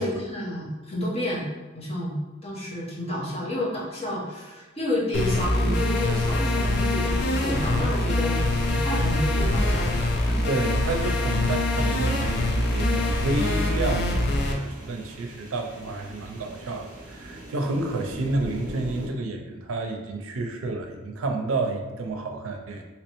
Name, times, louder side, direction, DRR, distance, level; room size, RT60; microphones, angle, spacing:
voice 1, 0.0-1.4 1.7-2.2 2.4-9.9 10.3-10.4, left 1 dB, 30° left, -6 dB, 1.0 m, -30 dB
sound 1, 5.1-14.5, left 2 dB, 55° left, 0.5 m, -24 dB
sound 2, 8.3-19.1, right 1 dB, 40° right, 0.6 m, -37 dB
voice 2, 10.5-22.8, right 2 dB, 85° right, 4 dB, 0.5 m, -30 dB
3.1 x 2.9 x 3.0 m, 1.3 s
head